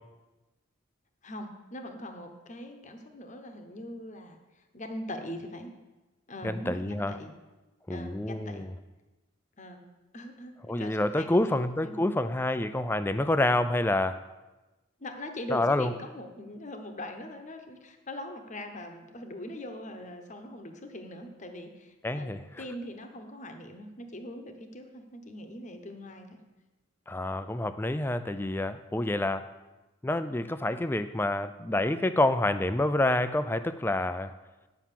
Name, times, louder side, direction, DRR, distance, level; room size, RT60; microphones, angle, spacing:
voice 1, 1.2-5.7 6.3-7.3 7.9-8.7 9.6-9.8 10.1-11.5 11.8-12.1 15.0-22.3 22.6-26.4, left 1 dB, 35° left, 5 dB, 0.9 m, -41 dB
voice 2, 6.4-7.2 7.9-8.7 10.7-14.2 15.5-15.9 22.0-22.4 27.1-29.5 30.0-34.3, left 1 dB, 10° left, 11 dB, 0.3 m, -28 dB
10.0 x 5.8 x 7.5 m, 1.1 s
head